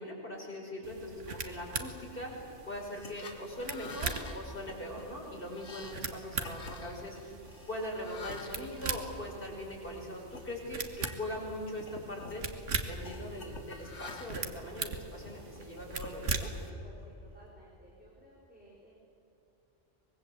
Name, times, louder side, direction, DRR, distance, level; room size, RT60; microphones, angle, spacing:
voice 1, 0.0-7.3 7.7-12.6 12.9-16.5, left 1 dB, 45° left, -2 dB, 5.8 m, -41 dB
sound 1, 0.8-16.7, right 4 dB, 80° right, 1.9 m, -41 dB
sound 2, 2.7-9.8 10.3-10.5 10.9-11.5 11.8-12.4 13.0-14.6 15.1-16.7, left 3 dB, 70° left, 1.9 m, -49 dB
voice 2, 16.8-19.0, equal, 5° right, -4 dB, 4.4 m, -57 dB
24.5 x 21.5 x 8.0 m, 2.9 s
omnidirectional pair, 1.2 m